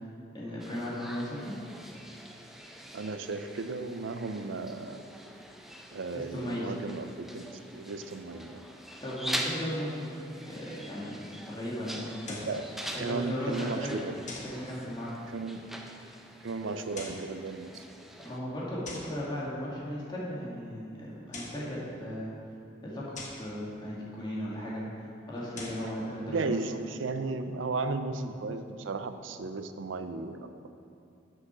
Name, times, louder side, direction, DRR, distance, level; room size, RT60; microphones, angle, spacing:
voice 1, 0.3-1.6 6.1-6.7 9.0-10.1 10.5-12.4 12.9-13.9 14.3-15.1 18.2-22.3 22.8-23.0 23.3-26.5, equal, 25° left, -6 dB, 2.0 m, -36 dB
sound 1, 0.6-18.4, equal, ahead, 0.5 m, -43 dB
voice 2, 2.9-5.0 5.9-7.4 7.7-8.6 12.5-12.6 13.0-14.2 15.3-15.7 16.4-17.8 26.3-30.4, right 3 dB, 85° right, 9 dB, 0.5 m, -35 dB
sound 2, 12.2-12.6 14.3-14.6 16.8-17.3 18.8-19.2 21.1-21.7 23.1-23.5 25.4-25.9, left 2 dB, 40° left, 1.3 m, -42 dB
7.8 x 6.2 x 6.1 m, 2.6 s
head